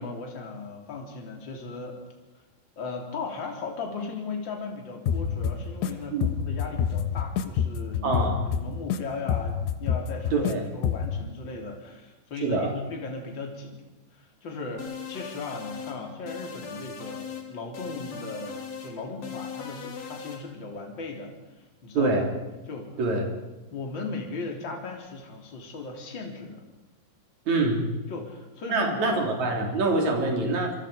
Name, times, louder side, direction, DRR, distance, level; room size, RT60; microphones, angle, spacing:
voice 1, 0.0-2.0 2.8-8.3 8.5-10.5 10.7-13.8 14.1-22.2 22.7-22.9 23.7-26.6 28.1-29.3, left 4 dB, 30° left, 1 dB, 3.7 m, -37 dB
sound 1, 5.1-5.9 6.2-9.0 9.3-10.5 10.8-11.2, left 8 dB, 90° left, 3.3 m, -27 dB
voice 2, 8.0-8.4 10.3-10.6 12.4-12.7 21.9-22.3 23.0-23.3 27.5-27.9 28.7-30.7, right 3 dB, 45° right, 1 dB, 4.7 m, -25 dB
sound 2, 14.8-16.0 16.3-17.5 17.7-18.9 19.2-20.4, left 6 dB, 45° left, 3.4 m, -39 dB
27.5 x 23.5 x 5.2 m, 1.1 s
omnidirectional pair, 4.7 m